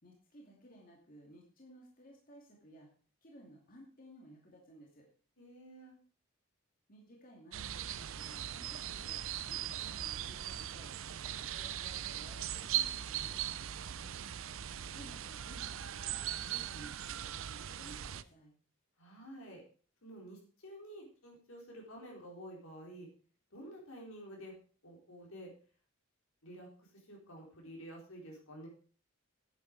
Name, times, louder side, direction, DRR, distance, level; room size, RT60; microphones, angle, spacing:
voice 1, 0.0-2.9 3.2-5.1 6.9-10.9 11.2-13.5 14.9-18.5, right 1 dB, 40° left, -1 dB, 2.5 m, -57 dB
voice 2, 5.4-6.0 13.7-14.1 19.0-19.6 20.0-23.1 23.5-24.6 24.8-25.5 26.4-28.7, equal, 75° left, -1 dB, 4.4 m, -50 dB
sound 1, 7.5-18.2, right 11 dB, 70° right, 0.5 m, -39 dB
9.9 x 9.8 x 4.7 m, 0.41 s
head